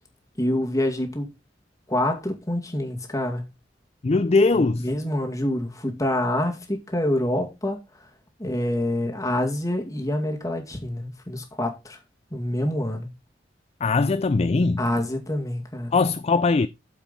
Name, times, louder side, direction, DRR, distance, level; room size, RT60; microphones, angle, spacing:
voice 1, 0.4-1.3 1.9-3.4 4.6-7.8 8.4-12.0 12.3-13.1 14.8-16.0, left 1 dB, 20° left, 2.2 m, -26 dB
voice 2, 4.0-4.9 13.8-14.8 15.9-16.7, left 3 dB, 35° left, 0.4 m, -20 dB
8.8 x 7.4 x 4.2 m
head